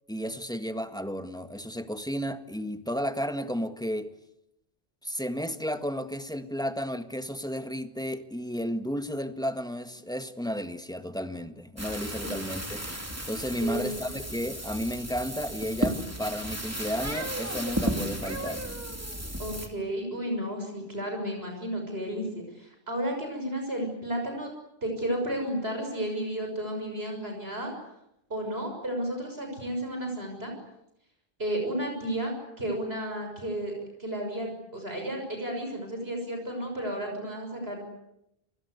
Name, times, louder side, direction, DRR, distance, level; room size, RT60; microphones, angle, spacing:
voice 1, 0.1-4.1 5.0-12.8 13.3-18.6, equal, 5° left, 8 dB, 1.7 m, -33 dB
sound 1, 11.8-19.7, right 1 dB, 15° right, 3.0 m, -34 dB
voice 2, 13.6-14.2 19.4-24.5 24.8-27.7 28.3-30.5 31.4-37.8, right 1 dB, 80° right, 2 dB, 6.9 m, -33 dB
30.0 x 24.0 x 8.2 m, 0.82 s
omnidirectional pair, 1.0 m